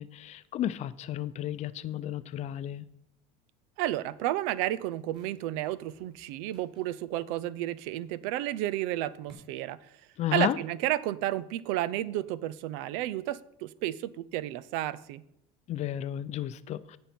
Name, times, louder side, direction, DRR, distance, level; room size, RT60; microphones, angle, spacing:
voice 1, 0.0-2.9 10.2-10.6 15.7-17.0, left 12 dB, 40° left, 15 dB, 0.6 m, -33 dB
voice 2, 3.8-9.8 10.3-15.2, right 14 dB, 75° right, 18 dB, 0.6 m, -32 dB
sound 1, 4.1-9.3, right 2 dB, 30° right, 3.8 m, -65 dB
16.5 x 5.5 x 4.4 m, 0.79 s
supercardioid pair, 125°, 17 cm